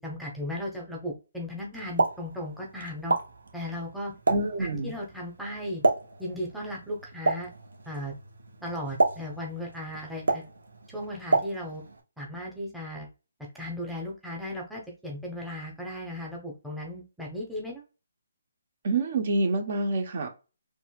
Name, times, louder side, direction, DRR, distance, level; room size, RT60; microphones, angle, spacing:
voice 1, 0.0-3.1 3.5-4.1 4.6-5.8 6.2-7.5 7.9-8.1 8.6-10.5 10.9-11.8 12.2-13.1 13.5-17.8, left 1 dB, ahead, -2 dB, 1.0 m, -36 dB
Explosion, 1.7-12.0, right 3 dB, 75° right, 1.0 m, -31 dB
voice 2, 4.3-4.9 18.8-20.3, right 2 dB, 50° right, 4 dB, 1.1 m, -27 dB
4.3 x 3.0 x 2.4 m, 0.31 s
figure-of-eight pair, 145°, 0 cm